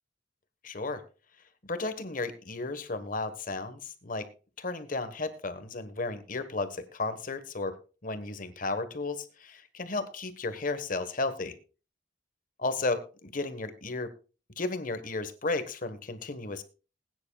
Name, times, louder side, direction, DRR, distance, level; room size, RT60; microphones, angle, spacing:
voice 1, 0.6-1.0 1.6-4.3 4.6-7.7 8.0-11.5 12.6-14.1 14.6-16.6, left 3 dB, 50° left, 10 dB, 1.3 m, -34 dB
20.5 x 9.7 x 2.3 m, 0.34 s
head